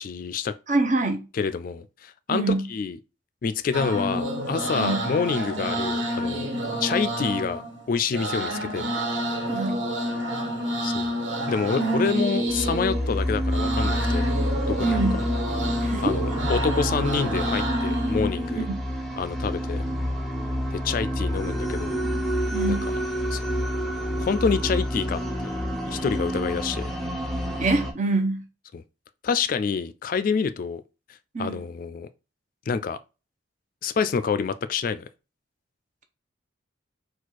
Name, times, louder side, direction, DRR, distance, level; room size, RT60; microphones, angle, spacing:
voice 1, 0.0-0.5 1.3-2.4 2.7-3.0 3.4-6.5 6.8-8.9 10.8-11.1 11.5-14.3 14.7-15.0 16.0-18.6 19.2-19.8 20.7-22.0 22.7-22.8 23.3-23.4 24.2-25.5 25.8-26.9 28.7-28.8 29.2-30.8 31.4-32.1 32.7-33.0 33.8-35.1, left 5 dB, 45° left, 0.3 m, -27 dB
voice 2, 0.7-1.3 2.3-2.7 4.7-5.0 9.4-9.9 11.8-12.5 14.8-15.2 15.8-16.2 18.5-18.9 22.5-22.9 27.6-28.4 31.3-31.6, right 3 dB, 40° right, 0.7 m, -25 dB
sound 1, 3.7-18.6, right 1 dB, 75° right, 1.4 m, -29 dB
sound 2, 12.5-27.9, equal, ahead, 0.6 m, -28 dB
4.2 x 2.4 x 4.6 m
head